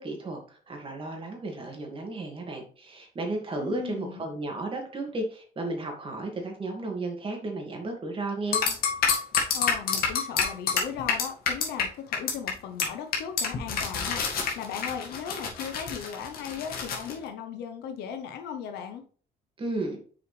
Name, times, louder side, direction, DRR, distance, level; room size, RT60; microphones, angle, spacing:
voice 1, 0.0-8.6 19.6-20.0, right 2 dB, 30° right, 2 dB, 2.2 m, -34 dB
voice 2, 3.6-4.2 9.5-14.2 14.5-19.0, left 8 dB, 80° left, 6 dB, 1.0 m, -37 dB
sound 1, 8.5-11.8 12.1-12.5 12.8-12.9 13.1-17.1, left 6 dB, 65° left, 2.0 m, -27 dB
6.7 x 5.0 x 3.4 m, 0.42 s
cardioid pair, 110°, 17 cm